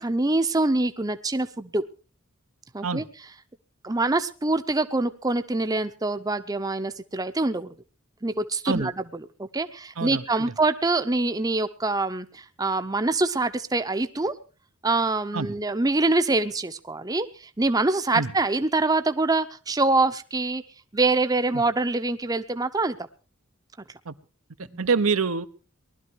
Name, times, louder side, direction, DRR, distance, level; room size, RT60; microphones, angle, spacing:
voice 1, 0.0-1.8 2.7-3.0 3.8-7.7 8.2-9.0 9.4-14.3 14.8-20.6 20.9-23.0 24.7-24.9, right 2 dB, 15° right, 9 dB, 0.7 m, -25 dB
voice 2, 10.0-10.5 15.3-15.5 18.1-18.3 21.5-21.6 24.1-24.2 24.8-25.5, right 4 dB, 85° right, 10 dB, 1.0 m, -26 dB
19.5 x 12.5 x 4.6 m, 0.36 s
head